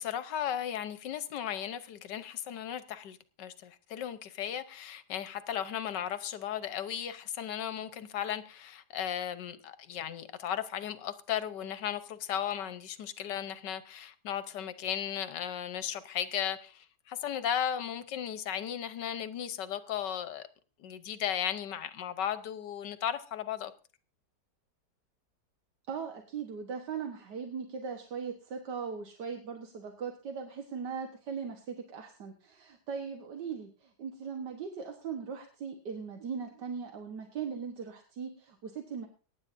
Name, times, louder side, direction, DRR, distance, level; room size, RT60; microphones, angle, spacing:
voice 1, 0.0-20.5 20.8-23.7, left 9 dB, 80° left, 1.5 m, -36 dB
voice 2, 25.9-39.1, right 6 dB, 75° right, 1.8 m, -39 dB
23.0 x 10.5 x 2.6 m
omnidirectional pair, 1.8 m